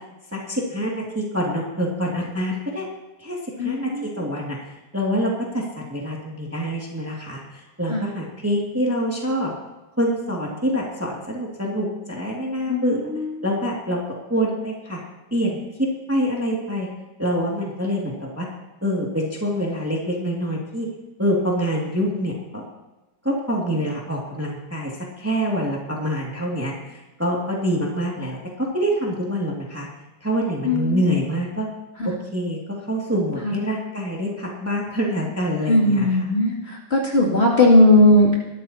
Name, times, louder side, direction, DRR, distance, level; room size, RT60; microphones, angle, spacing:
voice 1, 0.3-2.8 3.2-4.6 4.9-9.5 10.0-13.0 13.4-14.0 14.3-15.0 15.3-16.9 17.2-18.5 18.8-20.9 21.2-22.6 23.2-29.9 30.2-31.7 32.0-36.3, equal, 5° right, -3 dB, 2.1 m, -26 dB
voice 2, 3.6-4.1 7.9-8.0 12.7-12.8 30.6-31.0 35.7-36.5 36.9-38.3, left 1 dB, 35° left, -4 dB, 2.8 m, -16 dB
22.0 x 12.5 x 2.9 m, 1.0 s
omnidirectional pair, 2.1 m